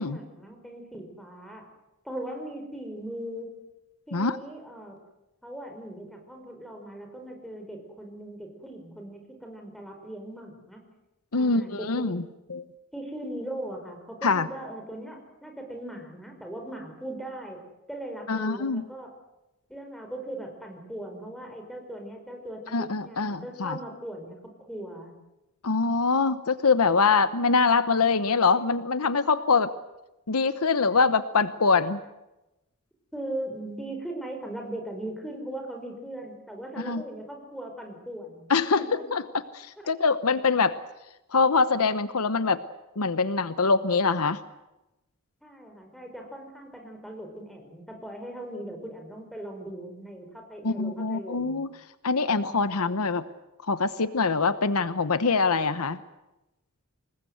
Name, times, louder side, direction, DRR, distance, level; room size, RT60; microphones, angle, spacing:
voice 1, 0.0-1.7 2.0-3.6 4.1-5.0 5.4-10.8 11.3-12.1 12.9-17.6 17.9-19.1 19.7-25.2 33.1-39.1 45.4-51.6, right 1 dB, ahead, 3 dB, 5.2 m, -39 dB
voice 2, 11.3-12.2 12.5-12.6 14.2-14.5 18.3-18.8 22.7-23.8 25.6-29.7 30.3-32.0 36.9-37.0 38.5-40.8 41.3-42.6 43.0-44.4 50.6-51.7 52.0-53.2 53.7-56.0, left 4 dB, 75° left, 13 dB, 1.0 m, -24 dB
26.0 x 20.5 x 8.0 m, 0.96 s
head